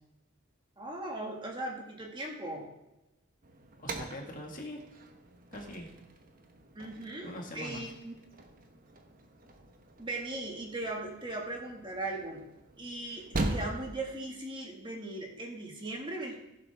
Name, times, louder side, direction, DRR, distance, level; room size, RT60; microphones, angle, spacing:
voice 1, 0.8-2.7 6.8-8.2 10.0-12.4 12.8-16.4, right 2 dB, 25° right, 0 dB, 1.7 m, -38 dB
sound 1, 3.4-14.1, right 2 dB, 40° right, 1.1 m, -41 dB
voice 2, 3.8-4.8 5.5-5.9 7.2-7.8, left 1 dB, 40° left, 1 dB, 1.7 m, -42 dB
15.5 x 7.6 x 3.4 m, 0.96 s
head